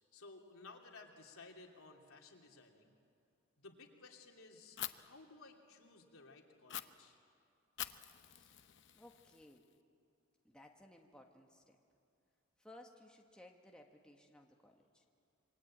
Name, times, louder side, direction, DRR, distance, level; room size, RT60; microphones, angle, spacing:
voice 1, 0.1-2.9 3.6-7.2, left 3 dB, 80° left, 1 dB, 3.1 m, -57 dB
Fire, 4.8-4.9 6.7-6.8 7.8-9.7, left 11 dB, 55° left, 0.8 m, -46 dB
voice 2, 8.2-8.7 8.9-9.6 10.4-11.8 12.6-15.1, left 1 dB, 5° left, 1 dB, 1.6 m, -60 dB
27.0 x 23.5 x 8.8 m, 2.5 s
head